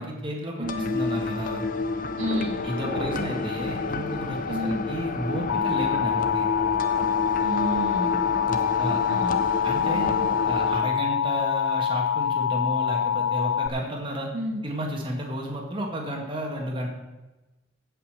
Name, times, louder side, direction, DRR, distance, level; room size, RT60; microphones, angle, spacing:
voice 1, 0.0-1.6 2.6-6.5 8.5-9.0 9.6-14.3 14.6-16.9, right 1 dB, 25° right, 0 dB, 1.9 m, -32 dB
sound 1, 0.6-10.8, left 3 dB, 45° left, 0.7 m, -30 dB
voice 2, 0.6-0.9 2.2-2.6 4.5-4.8 7.4-8.2 9.1-9.4 9.9-10.3 14.3-14.6, equal, 80° right, 2 dB, 1.9 m, -31 dB
sound 2, 2.2-9.7, left 1 dB, 70° left, 4.4 m, -41 dB
Alarm, 5.5-13.7, left 8 dB, 90° left, 0.5 m, -25 dB
16.0 x 5.7 x 6.7 m, 1.1 s
head